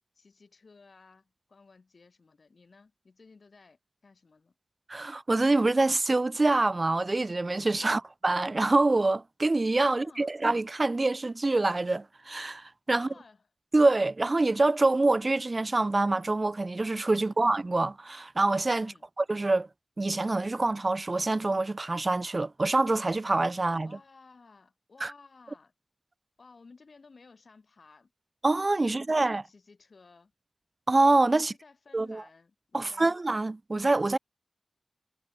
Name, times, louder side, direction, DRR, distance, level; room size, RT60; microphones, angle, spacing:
voice 1, 0.2-4.5 7.8-8.0 9.8-10.3 12.9-13.4 17.3-17.4 18.7-19.1 23.8-25.7 26.4-28.1 28.8-30.3 31.3-33.1, left 4 dB, 75° left, 3.9 m, -56 dB
voice 2, 4.9-13.1 13.7-18.9 19.2-19.7 20.0-24.0 25.0-25.1 28.4-29.4 30.9-31.5 31.9-32.2 32.7-34.2, right 2 dB, 40° right, 0.4 m, -25 dB
wide cardioid pair, 85°, 0 cm